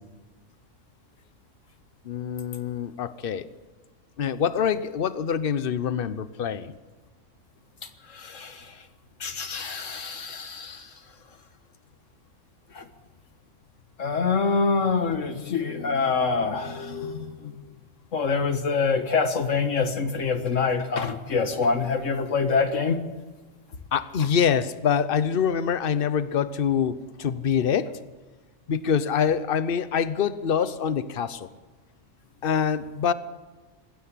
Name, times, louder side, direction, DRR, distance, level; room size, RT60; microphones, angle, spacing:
voice 1, 2.0-3.5 4.2-6.8 23.9-28.0 28.7-31.5 32.4-33.1, left 7 dB, 50° left, 14 dB, 1.0 m, -25 dB
voice 2, 8.1-8.8 9.2-10.9 12.7-12.9 14.0-17.6 18.1-23.0, left 4 dB, 75° left, 8 dB, 1.9 m, -26 dB
20.5 x 16.0 x 8.6 m, 1.3 s
omnidirectional pair, 1.3 m